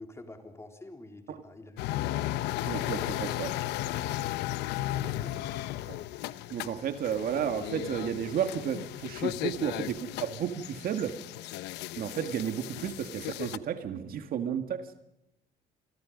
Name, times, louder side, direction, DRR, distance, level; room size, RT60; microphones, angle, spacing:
voice 1, 0.0-2.2 4.8-5.4, left 2 dB, 15° left, 4 dB, 3.7 m, -47 dB
sound 1, 1.8-13.6, left 15 dB, 85° left, 0.9 m, -35 dB
voice 2, 2.6-3.6 5.9-6.0 6.5-11.2 12.0-14.9, right 9 dB, 60° right, 8 dB, 2.0 m, -32 dB
28.5 x 24.5 x 5.3 m, 0.84 s
cardioid pair, 110°, 17 cm